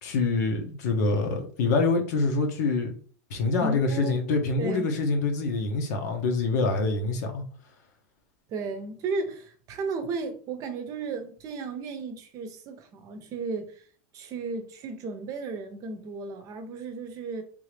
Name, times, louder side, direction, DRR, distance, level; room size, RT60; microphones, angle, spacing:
voice 1, 0.0-3.0 3.3-7.4, left 3 dB, 80° left, 1.0 m, -26 dB
voice 2, 3.6-4.2 4.6-4.9 8.5-13.7 14.1-17.4, right 4 dB, 40° right, 0.7 m, -34 dB
3.7 x 2.8 x 3.2 m
supercardioid pair, 140°, 9 cm